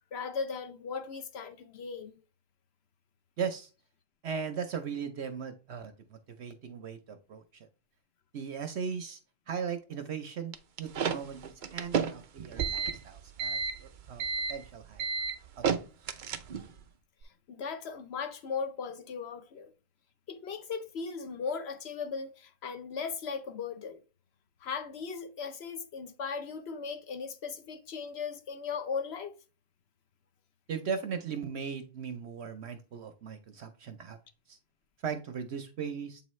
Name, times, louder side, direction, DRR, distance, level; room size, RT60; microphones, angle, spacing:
voice 1, 0.1-2.2 17.2-19.7 20.3-24.0 24.6-29.3, left 5 dB, 60° left, 0.7 m, -37 dB
voice 2, 3.4-3.7 4.2-7.7 8.3-9.2 9.5-10.5 10.8-15.0 15.6-15.7 30.7-34.2 34.5-34.6 35.0-36.2, right 6 dB, 55° right, 0.8 m, -38 dB
sound 1, 10.5-16.8, right 6 dB, 85° right, 0.4 m, -32 dB
8.1 x 3.8 x 3.1 m
omnidirectional pair, 1.6 m